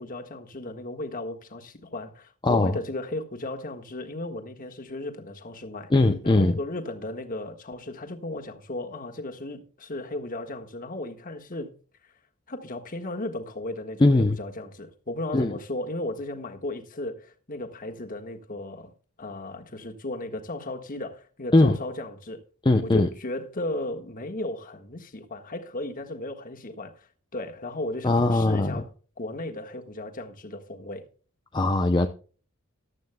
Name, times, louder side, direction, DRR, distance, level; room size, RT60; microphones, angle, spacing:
voice 1, 0.0-5.9 6.2-11.7 12.5-18.9 19.2-22.4 22.8-27.1 27.3-28.9 29.2-31.1, left 2 dB, 40° left, 1.5 m, -35 dB
voice 2, 2.4-2.8 5.9-6.6 14.0-14.4 15.3-15.5 21.5-21.8 22.6-23.1 28.0-28.7 31.5-32.1, left 2 dB, 20° left, 0.5 m, -20 dB
14.5 x 11.5 x 2.2 m
head